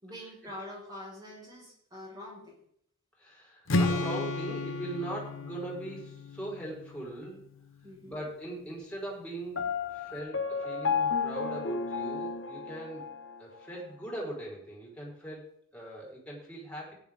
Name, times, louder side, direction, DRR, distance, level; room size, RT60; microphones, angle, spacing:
voice 1, 0.0-2.6 7.8-8.3, left 1 dB, 20° right, -3 dB, 4.8 m, -45 dB
voice 2, 3.2-7.6 8.0-9.6 9.9-13.1 13.4-16.9, right 1 dB, 5° left, -4 dB, 4.3 m, -40 dB
Strum, 3.7-7.8, left 2 dB, 85° left, 1.0 m, -33 dB
Piano, 9.6-13.4, left 5 dB, 65° left, 1.4 m, -32 dB
16.0 x 10.0 x 3.6 m, 0.67 s
head